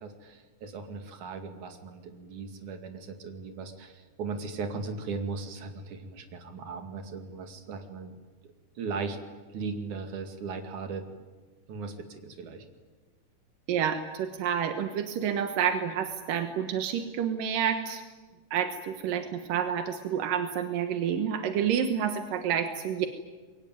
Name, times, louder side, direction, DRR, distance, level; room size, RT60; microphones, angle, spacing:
voice 1, 0.0-8.2 8.8-9.2 9.5-11.0 11.7-12.7, right 4 dB, 65° right, 5 dB, 3.7 m, -37 dB
voice 2, 13.7-18.0 18.5-23.1, right 8 dB, 85° right, 7 dB, 3.0 m, -29 dB
26.5 x 23.0 x 9.3 m, 1.3 s
omnidirectional pair, 3.7 m